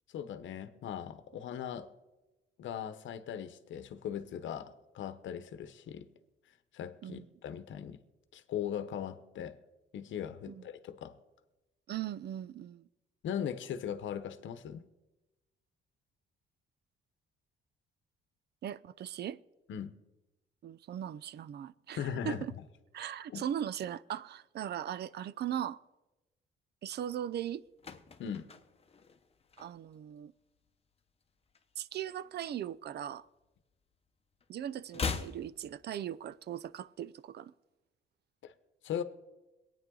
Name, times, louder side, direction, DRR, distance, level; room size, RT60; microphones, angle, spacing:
voice 1, 0.1-1.9 2.6-6.1 6.7-8.0 8.3-9.6 9.9-11.1 13.2-14.8 19.7-20.0 21.9-22.4 23.3-23.4 28.2-28.5 38.4-38.5 38.8-39.0, left 9 dB, 70° left, 0.9 m, -39 dB
voice 2, 11.9-12.9 18.6-19.4 20.6-22.5 22.9-25.8 26.8-27.6 29.6-30.3 31.8-33.3 34.5-37.5, right 10 dB, 55° right, 0.5 m, -39 dB
sound 1, 27.4-30.1 30.4-30.7 31.0-32.4 32.7-34.1 34.3-36.4 36.7-36.8, left 5 dB, 30° left, 0.9 m, -42 dB
22.5 x 9.3 x 3.8 m
cardioid pair, 90°, 20 cm